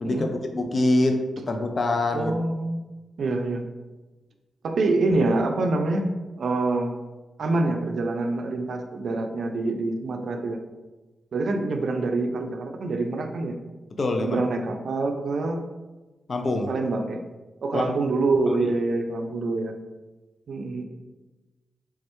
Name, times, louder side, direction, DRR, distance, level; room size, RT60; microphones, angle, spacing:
voice 1, 0.0-1.2 1.5-2.3 14.0-14.4 16.3-16.7 17.7-17.9, left 2 dB, 45° left, 4 dB, 0.4 m, -24 dB
voice 2, 2.1-2.8 3.2-3.6 4.6-6.9 7.4-10.6 11.3-13.6 14.2-15.6 16.7-17.2 17.6-19.8 20.5-20.8, right 2 dB, 70° right, 4 dB, 0.4 m, -26 dB
3.5 x 3.2 x 3.0 m, 1.2 s
cardioid pair, 85°, 0 cm